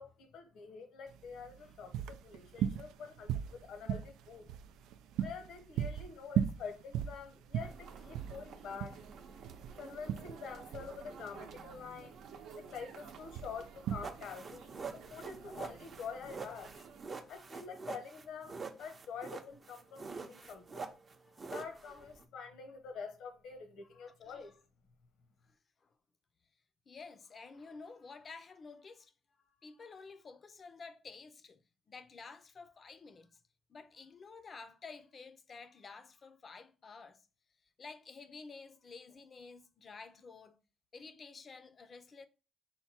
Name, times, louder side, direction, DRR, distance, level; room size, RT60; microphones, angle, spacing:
voice 1, 0.0-4.5 5.1-9.0 9.8-16.8 17.3-20.9 21.4-24.5, left 6 dB, 70° left, 0.9 m, -47 dB
sound 1, 1.1-16.7, right 9 dB, 85° right, 0.3 m, -39 dB
sound 2, 7.6-17.1, right 6 dB, 70° right, 0.7 m, -53 dB
sound 3, 14.0-22.2, right 4 dB, 30° right, 0.6 m, -45 dB
voice 2, 23.9-24.5 25.8-25.9 26.9-29.1 29.6-31.6 31.9-33.4 33.7-37.3 37.8-40.6 40.9-42.3, left 4 dB, 35° left, 0.5 m, -51 dB
5.7 x 2.2 x 4.2 m
cardioid pair, 120°, 0 cm